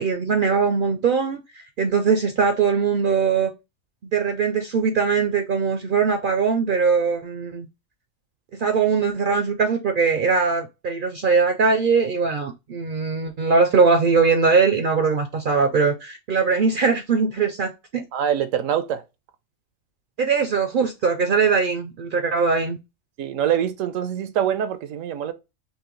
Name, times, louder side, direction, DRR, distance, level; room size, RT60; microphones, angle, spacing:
voice 1, 0.0-3.5 4.1-7.7 8.5-18.0 20.2-22.8, right 5 dB, 60° right, 0.5 m, -21 dB
voice 2, 18.1-19.0 23.2-25.3, right 9 dB, 85° right, 1.0 m, -24 dB
5.5 x 2.2 x 3.0 m
omnidirectional pair, 1.3 m